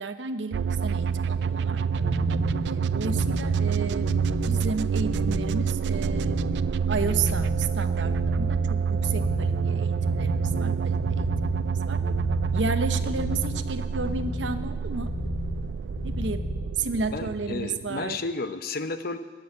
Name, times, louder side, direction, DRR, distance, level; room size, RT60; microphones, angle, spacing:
voice 1, 0.0-2.0 2.6-4.1 4.5-6.4 6.9-11.6 11.9-12.0 12.5-15.1 16.0-16.4 16.8-18.2, right 4 dB, 85° right, 10 dB, 0.8 m, -32 dB
sound 1, 0.5-18.3, right 6 dB, 65° right, 0.3 m, -27 dB
sound 2, 1.8-16.8, left 2 dB, 25° left, 0.5 m, -33 dB
voice 2, 17.1-19.2, left 3 dB, 55° left, 10 dB, 0.8 m, -32 dB
14.5 x 7.0 x 9.4 m, 1.5 s
head